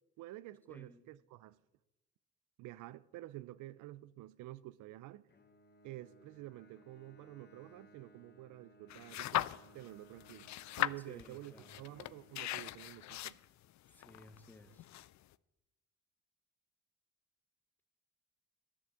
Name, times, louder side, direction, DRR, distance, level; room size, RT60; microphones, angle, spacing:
voice 1, 0.2-1.6 2.6-5.3 5.8-9.5 9.7-10.5 10.8-13.4, right 16 dB, 85° right, 0.5 m, -50 dB
voice 2, 0.7-1.1 11.1-11.8 13.9-14.9, left 1 dB, 5° left, 1.1 m, -57 dB
Bowed string instrument, 5.3-13.5, equal, 35° left, 1.1 m, -63 dB
sound 1, 8.9-9.9 10.2-15.3, left 15 dB, 65° left, 0.5 m, -39 dB
11.0 x 9.3 x 7.5 m
cardioid pair, 90°, 30 cm